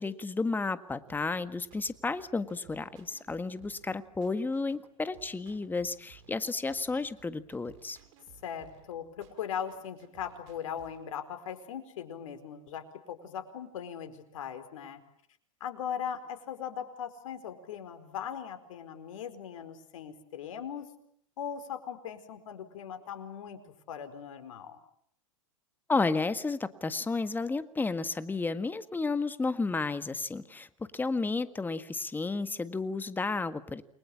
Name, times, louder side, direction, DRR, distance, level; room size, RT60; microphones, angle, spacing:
voice 1, 0.0-8.0 25.9-30.7 30.9-33.8, left 3 dB, 10° left, 12 dB, 1.7 m, -32 dB
sound 1, 1.1-11.1, right 9 dB, 60° right, 5.2 m, -59 dB
voice 2, 8.4-15.0 15.6-20.9 21.4-23.6 23.9-24.8, left 8 dB, 70° left, 8 dB, 4.6 m, -39 dB
29.0 x 22.5 x 8.7 m, 0.65 s
hypercardioid pair, 110°, 18 cm